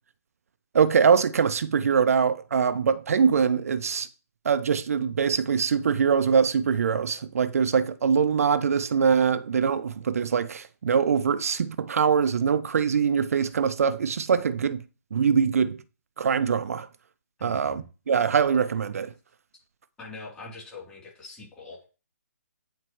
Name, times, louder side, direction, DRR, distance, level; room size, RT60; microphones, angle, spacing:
voice 1, 0.7-4.1 4.4-14.8 15.1-15.8 16.2-16.9 17.4-19.1, right 6 dB, 65° right, 0.5 m, -23 dB
voice 2, 17.4-17.9 20.0-21.9, left 3 dB, 10° left, 3.2 m, -43 dB
9.2 x 4.3 x 3.1 m
hypercardioid pair, 150°, 8 cm